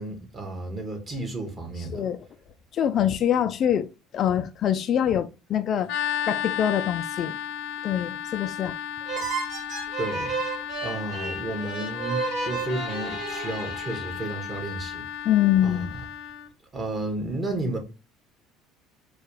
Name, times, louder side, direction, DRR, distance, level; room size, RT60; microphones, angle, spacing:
voice 1, 0.0-2.0 10.0-10.3 10.8-15.0 15.6-16.0 16.7-17.8, right 2 dB, 25° right, 1.5 m, -32 dB
voice 2, 1.9-2.3 2.7-3.9 4.1-5.9 6.3-7.4 7.8-8.8 15.2-15.9, left 10 dB, 45° left, 0.4 m, -24 dB
sound 1, 5.9-16.5, left 10 dB, 75° left, 0.8 m, -34 dB
sound 2, 9.1-14.6, right 4 dB, 60° right, 1.9 m, -33 dB
4.5 x 2.3 x 4.8 m
supercardioid pair, 110°, 0 cm